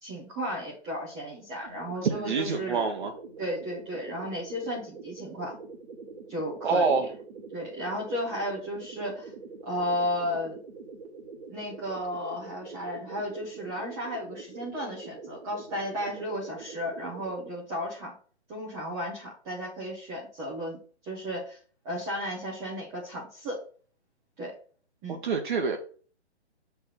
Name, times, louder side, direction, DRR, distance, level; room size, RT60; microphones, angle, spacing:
voice 1, 0.0-2.9 3.4-5.5 6.3-7.0 7.5-9.3 9.6-10.6 11.5-18.1 18.5-20.8 21.0-21.6 21.8-23.6 24.4-24.5 25.0-25.2, equal, 10° right, -5 dB, 0.7 m, -34 dB
sound 1, 1.6-17.5, right 4 dB, 30° right, 1.4 m, -45 dB
voice 2, 2.0-3.1 6.6-7.1 25.1-25.8, right 5 dB, 45° right, 3 dB, 1.0 m, -26 dB
6.5 x 3.4 x 5.6 m, 0.42 s
hypercardioid pair, 165°, 34 cm